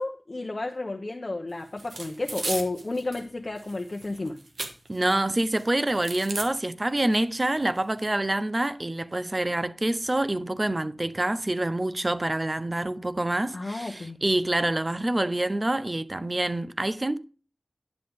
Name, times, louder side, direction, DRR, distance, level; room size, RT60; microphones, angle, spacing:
voice 1, 0.0-4.4 13.5-14.2, left 2 dB, 50° left, 1.0 m, -32 dB
sound 1, 1.8-3.2 3.6-5.2 5.5-6.5 7.1-7.2 7.5-8.1, right 2 dB, 85° right, 1.4 m, -36 dB
voice 2, 4.9-17.2, right 1 dB, 35° right, 0.6 m, -26 dB
10.5 x 7.5 x 3.7 m
cardioid pair, 40°, 0 cm